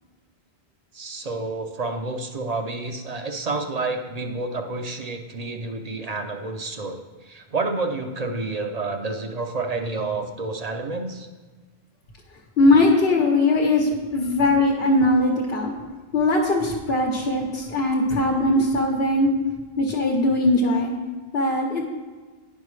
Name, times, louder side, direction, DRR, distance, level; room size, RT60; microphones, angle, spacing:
voice 1, 0.9-7.0 7.3-11.3, right 3 dB, 45° right, 5 dB, 0.6 m, -29 dB
voice 2, 12.6-15.7 16.1-19.3 19.8-20.9 21.3-21.8, left 2 dB, 70° left, 0 dB, 1.1 m, -20 dB
10.0 x 5.4 x 3.2 m, 1.4 s
omnidirectional pair, 1.0 m